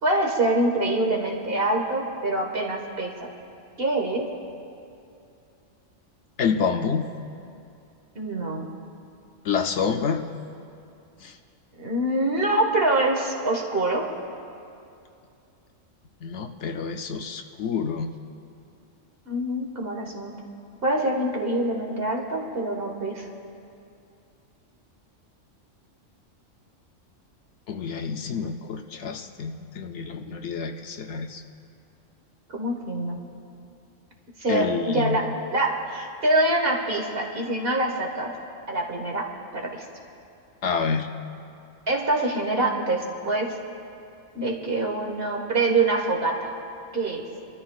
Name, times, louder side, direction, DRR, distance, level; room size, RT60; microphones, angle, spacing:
voice 1, 0.0-3.3 3.8-4.2 8.1-8.7 11.8-14.0 19.3-20.4 20.8-23.2 32.5-33.2 34.4-35.2 35.5-38.3 38.7-39.2 39.5-39.8 41.9-43.5 44.3-46.5 46.9-47.2, right 2 dB, 50° right, 0 dB, 1.6 m, -25 dB
voice 2, 6.4-7.1 9.4-10.3 11.2-11.4 16.2-18.1 27.7-31.4 34.5-35.3 40.6-41.1, left 5 dB, 65° left, 5 dB, 0.9 m, -28 dB
27.0 x 13.0 x 2.3 m, 2.6 s
omnidirectional pair, 1.3 m